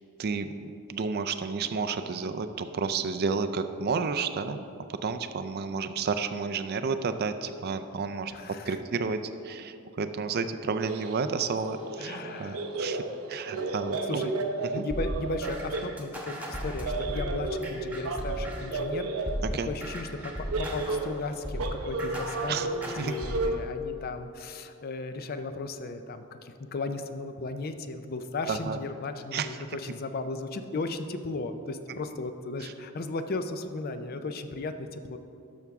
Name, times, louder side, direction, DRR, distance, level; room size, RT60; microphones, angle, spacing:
voice 1, 0.2-4.6 4.9-8.3 8.6-13.0 13.3-14.2 14.7-14.8 19.4-19.7 22.5-22.7 23.0-23.1 28.5-28.8 29.3-29.5 32.6-32.7, right 5 dB, 45° right, 9 dB, 0.4 m, -31 dB
voice 2, 8.3-8.8 12.0-12.6 14.1-14.3 14.6-19.1 19.7-22.6 23.0-35.2, left 3 dB, 45° left, 9 dB, 0.4 m, -35 dB
sound 1, 10.8-16.0 16.8-19.4 20.1-23.6, right 3 dB, 90° right, 0.7 m, -33 dB
sound 2, 14.9-18.8 19.3-23.6, equal, 5° right, 1.0 m, -36 dB
12.5 x 5.9 x 3.5 m, 2.6 s
head